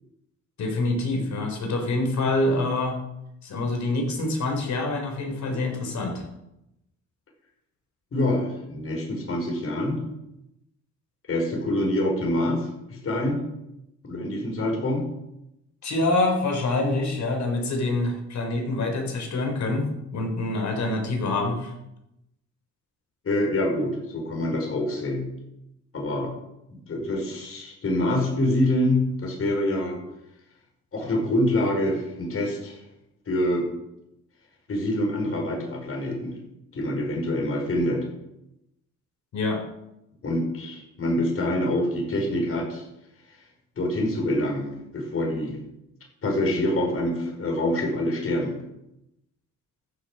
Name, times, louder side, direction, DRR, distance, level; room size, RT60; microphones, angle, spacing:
voice 1, 0.6-3.0 3.4-6.3 15.8-19.9 20.1-21.7 39.3-39.6, left 2 dB, 65° left, 3 dB, 4.1 m, -26 dB
voice 2, 8.1-10.0 11.3-13.4 14.0-15.0 23.2-25.2 25.9-26.3 26.9-30.0 30.9-32.8 33.3-33.7 34.7-36.3 36.7-38.1 40.2-42.8 43.8-45.6 46.2-48.5, left 1 dB, 50° left, 1 dB, 5.3 m, -26 dB
14.5 x 7.5 x 6.4 m, 0.86 s
cardioid pair, 90°, 30 cm